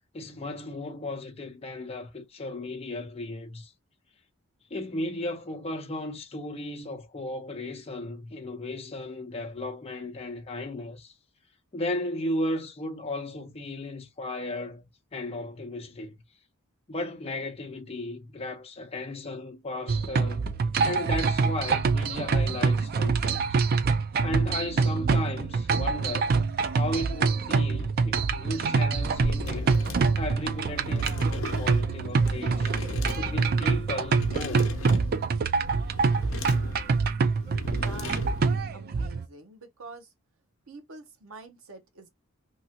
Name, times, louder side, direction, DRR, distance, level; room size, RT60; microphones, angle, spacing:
voice 1, 0.1-3.7 4.7-11.1 11.7-16.1 16.9-20.5 20.8-23.6 24.2-26.4 26.7-29.7 30.2-32.7 33.2-34.7, left 1 dB, 30° left, 0.6 m, -35 dB
sound 1, 19.9-39.2, right 4 dB, 45° right, 0.4 m, -25 dB
sound 2, 29.0-38.6, left 3 dB, 70° left, 0.7 m, -37 dB
voice 2, 37.7-40.1 40.7-42.1, right 3 dB, 80° right, 0.8 m, -47 dB
2.9 x 2.3 x 2.8 m
head